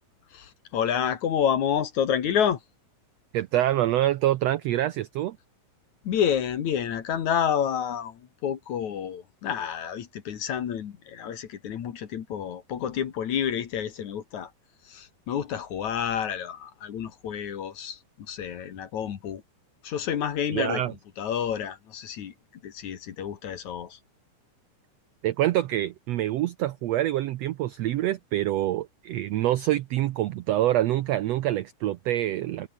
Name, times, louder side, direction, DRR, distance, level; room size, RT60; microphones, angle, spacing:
voice 1, 0.3-2.6 6.0-14.5 14.9-18.0 18.3-19.4 19.8-20.8 21.2-22.3 22.6-24.0, left 8 dB, 60° left, 3.0 m, -29 dB
voice 2, 3.3-5.4 20.5-20.9 25.2-32.7, right 13 dB, 90° right, 1.4 m, -26 dB
omnidirectional pair, 3.9 m